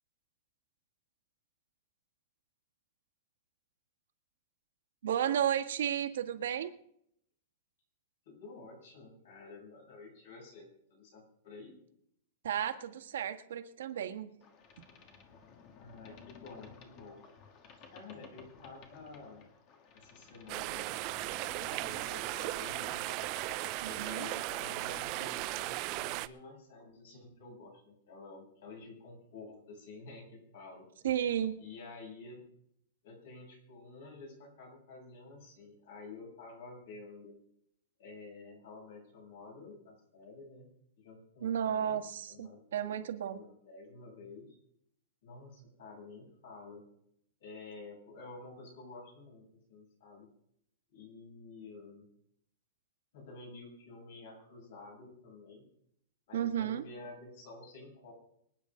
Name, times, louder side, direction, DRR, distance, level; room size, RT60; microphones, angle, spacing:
voice 1, 5.0-6.7 12.4-14.3 23.8-24.3 31.0-31.5 41.4-43.4 56.3-56.8, right 9 dB, 80° right, 7 dB, 1.6 m, -33 dB
voice 2, 8.3-11.7 15.8-17.2 17.8-19.4 19.9-20.8 21.6-23.1 23.8-30.9 31.6-32.4 33.0-37.4 38.0-40.7 41.0-42.0 42.3-42.9 43.3-44.6 45.2-46.8 47.4-50.3 50.9-52.1 53.1-55.6 56.3-58.1, left 3 dB, 60° left, 0 dB, 7.6 m, -50 dB
Boat Water vehicle, 14.4-24.9, left 5 dB, 30° left, 1.6 m, -55 dB
sound 1, 20.5-26.3, right 18 dB, 30° right, 0.5 m, -37 dB
25.0 x 9.3 x 3.8 m, 0.71 s
supercardioid pair, 170°, 0 cm